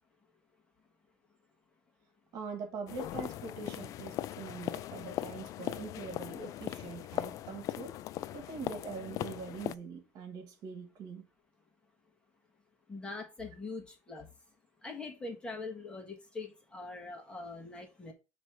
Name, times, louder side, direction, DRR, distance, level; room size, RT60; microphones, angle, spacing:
voice 1, 2.3-8.0 8.3-11.2, right 4 dB, 60° right, 1.6 m, -43 dB
sound 1, 2.9-9.8, left 13 dB, 55° left, 0.4 m, -39 dB
voice 2, 12.9-14.3 14.8-18.1, left 3 dB, 15° left, 1.4 m, -43 dB
7.4 x 3.1 x 4.8 m
cardioid pair, 150°, 7 cm